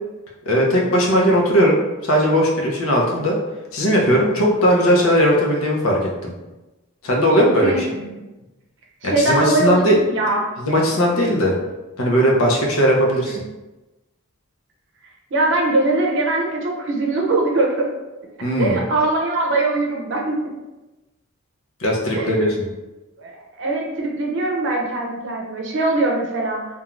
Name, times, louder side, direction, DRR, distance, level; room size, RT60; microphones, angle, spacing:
voice 1, 0.5-3.4 3.7-6.3 7.0-7.9 9.0-10.0 10.6-11.5 12.0-13.4 18.4-18.8 21.8-22.5, equal, 80° left, -2 dB, 0.7 m, -18 dB
voice 2, 7.6-8.1 9.0-10.4 13.2-13.4 15.3-17.9 18.6-20.4 22.1-22.3 23.2-26.7, right 2 dB, 60° right, 0 dB, 0.6 m, -21 dB
2.5 x 2.3 x 3.0 m, 1.1 s
head